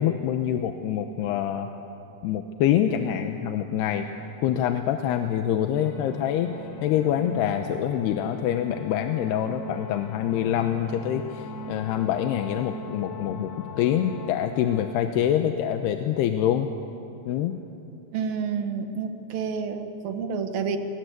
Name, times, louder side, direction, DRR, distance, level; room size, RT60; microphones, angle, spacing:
voice 1, 0.0-1.7 2.2-4.1 4.4-16.7 17.3-17.6, left 10 dB, 90° left, 6 dB, 3.0 m, -25 dB
sound 1, 5.7-14.9, left 3 dB, 60° left, 2.7 m, -40 dB
voice 2, 18.1-20.8, right 6 dB, 65° right, 7 dB, 3.1 m, -29 dB
30.0 x 23.0 x 8.2 m, 2.8 s
omnidirectional pair, 4.6 m